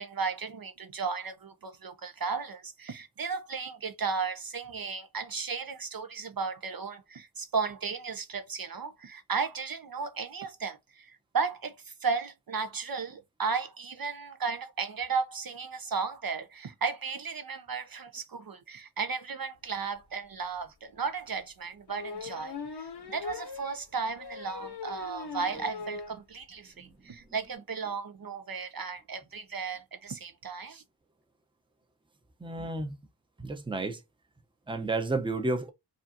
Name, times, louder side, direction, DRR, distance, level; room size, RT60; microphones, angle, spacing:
voice 1, 0.0-30.8, right 5 dB, 55° right, 0.6 m, -35 dB
sound 1, 20.1-20.2 20.6-20.7 21.9-26.2 26.6-26.7 26.9-27.0 27.2-27.5, left 5 dB, 70° left, 0.8 m, -40 dB
voice 2, 32.4-33.0 33.4-34.0 34.7-35.7, right 2 dB, 10° right, 0.7 m, -31 dB
5.0 x 2.5 x 2.6 m
wide cardioid pair, 75°, 42 cm